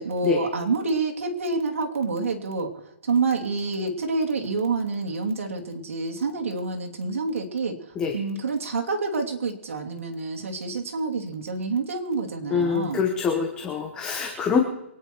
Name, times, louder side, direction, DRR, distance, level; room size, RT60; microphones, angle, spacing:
voice 1, 0.0-2.7 3.0-7.8 8.1-13.0, right 4 dB, 75° right, 1 dB, 2.8 m, -27 dB
voice 2, 12.5-14.6, left 6 dB, 10° left, 3 dB, 1.1 m, -24 dB
24.0 x 9.7 x 4.5 m, 0.92 s
hypercardioid pair, 165°, 7 cm